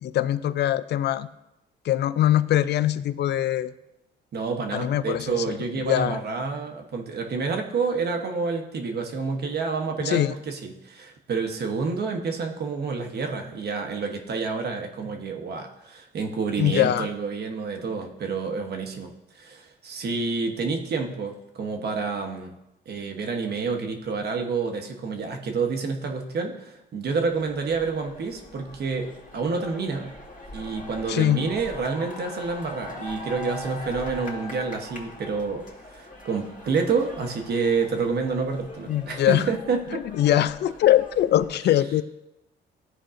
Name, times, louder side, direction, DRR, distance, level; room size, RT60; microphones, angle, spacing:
voice 1, 0.0-1.3 1.9-3.7 4.7-5.3 5.8-6.2 10.1-10.3 16.6-17.1 31.1-31.4 38.9-39.4 39.9-42.0, left 12 dB, 60° left, 14 dB, 0.4 m, -22 dB
voice 2, 4.3-22.5 22.9-30.1 30.5-40.0, right 4 dB, 55° right, 3 dB, 1.0 m, -28 dB
sound 1, 27.3-41.5, left 1 dB, 40° left, 1.7 m, -42 dB
12.5 x 4.5 x 2.5 m, 0.91 s
cardioid pair, 90°, 20 cm